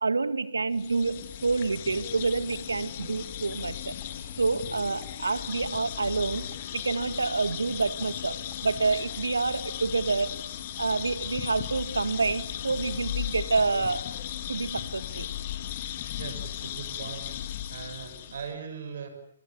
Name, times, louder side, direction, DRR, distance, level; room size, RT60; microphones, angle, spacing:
voice 1, 0.0-4.0 4.4-10.4 10.8-14.1 14.5-15.3, right 4 dB, 85° right, 13 dB, 1.9 m, -28 dB
sound 1, 0.7-18.5, left 11 dB, 45° left, 3.3 m, -36 dB
sound 2, 1.9-2.6 3.0-3.1 3.5-3.6 4.0-4.1 4.5-4.6 5.0-5.1 5.5-5.7 6.0-6.1 6.5-6.6 7.0-7.1 7.5-7.6 8.0-8.1 8.5-8.6, right 15 dB, 30° right, 5.2 m, -55 dB
voice 2, 16.1-17.3 17.7-19.1, right 6 dB, 65° right, 8 dB, 6.3 m, -39 dB
28.0 x 27.5 x 7.1 m, 0.65 s
figure-of-eight pair, 130°, 0 cm